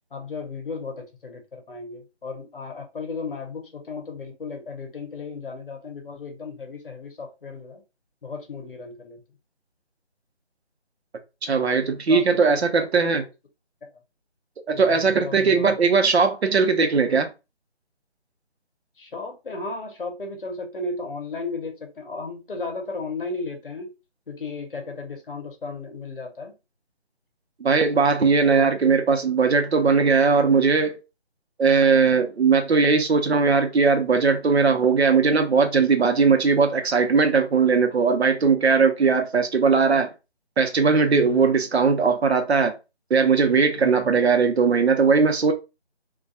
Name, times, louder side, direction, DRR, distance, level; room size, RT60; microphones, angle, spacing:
voice 1, 0.1-7.8 8.2-9.2 12.1-13.2 14.7-15.8 19.0-23.9 24.3-26.5 28.5-28.7 41.1-41.4 43.8-44.1, left 3 dB, 55° left, 0.7 m, -35 dB
voice 2, 11.4-13.2 14.7-17.3 27.6-31.0 31.6-40.1 40.6-42.7 43.1-45.5, right 5 dB, 70° right, 0.6 m, -19 dB
2.3 x 2.1 x 2.5 m
figure-of-eight pair, 170°, 33 cm